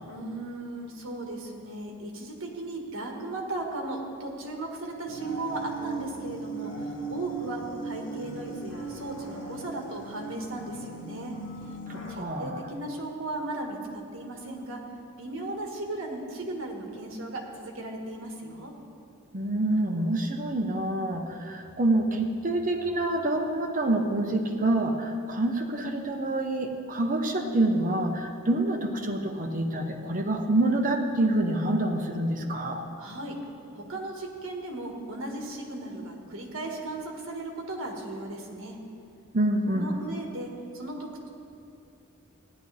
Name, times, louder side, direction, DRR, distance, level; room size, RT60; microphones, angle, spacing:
voice 1, 0.1-11.4 12.1-14.8 15.2-18.7 33.0-33.4 33.7-38.8 39.7-41.3, right 2 dB, 65° right, 1 dB, 1.7 m, -36 dB
sound 1, 5.1-12.1, right 3 dB, 55° left, 1.9 m, -38 dB
voice 2, 11.9-12.6 19.3-32.8 39.3-40.0, right 1 dB, 40° right, 3 dB, 1.0 m, -27 dB
15.5 x 10.5 x 3.4 m, 2.6 s
head